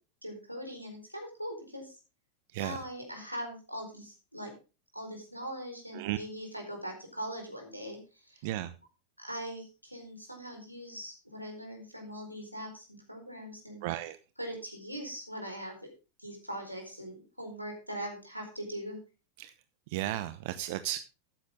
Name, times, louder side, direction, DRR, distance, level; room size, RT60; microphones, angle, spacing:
voice 1, 0.2-2.0 2.6-4.5 4.9-8.4 9.2-13.9 14.4-15.8 16.2-19.0, equal, 90° right, 2 dB, 4.4 m, -41 dB
voice 2, 8.4-8.7 13.8-14.2 19.4-19.5 19.9-21.0, right 14 dB, 50° right, 12 dB, 0.8 m, -34 dB
13.5 x 9.8 x 3.6 m, 0.32 s
figure-of-eight pair, 90°, 0 cm